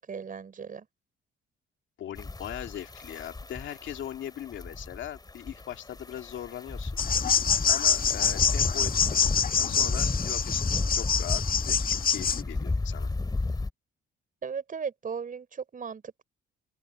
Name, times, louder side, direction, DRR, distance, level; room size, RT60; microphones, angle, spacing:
voice 1, 0.1-0.9 14.4-16.2, right 6 dB, 45° right, 5.8 m, -36 dB
voice 2, 2.0-6.9 7.6-9.2 9.6-13.1, left 11 dB, 75° left, 2.6 m, -40 dB
sound 1, 2.2-13.7, left 3 dB, 20° left, 3.5 m, -33 dB
sound 2, 7.0-12.4, left 7 dB, 45° left, 1.7 m, -26 dB
open air
cardioid pair, 90°, 20 cm